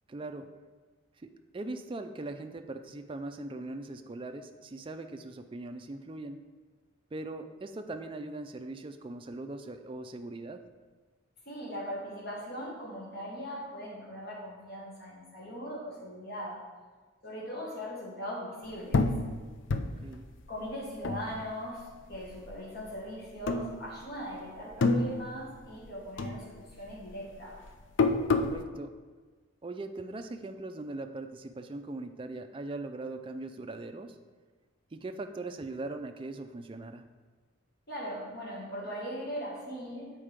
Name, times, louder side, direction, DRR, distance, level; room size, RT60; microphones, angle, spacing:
voice 1, 0.1-0.5 1.2-6.4 7.1-10.6 19.8-20.3 28.3-28.9 29.6-34.2 34.9-37.1, right 2 dB, 25° right, 7 dB, 0.4 m, -40 dB
voice 2, 11.4-16.7 17.2-19.1 20.5-27.6 37.9-40.1, equal, 50° left, -4 dB, 1.6 m, -40 dB
sound 1, 18.9-21.8 22.1-22.9 23.4-24.3 24.6-25.9 26.2-28.6, left 3 dB, 65° left, 0.5 m, -29 dB
7.3 x 4.5 x 5.0 m, 1.4 s
head